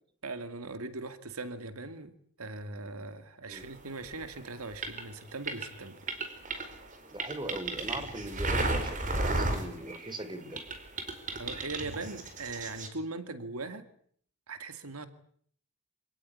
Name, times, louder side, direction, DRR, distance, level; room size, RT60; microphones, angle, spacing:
voice 1, 0.2-2.1 2.4-6.0 11.3-13.9 14.5-15.1, right 3 dB, 85° right, 10 dB, 2.3 m, -40 dB
sound 1, 4.0-10.2 10.6-12.9, right 2 dB, 35° right, 4.6 m, -34 dB
voice 2, 7.1-10.6, right 1 dB, 20° right, 11 dB, 3.1 m, -40 dB
27.0 x 18.0 x 9.9 m, 0.62 s
head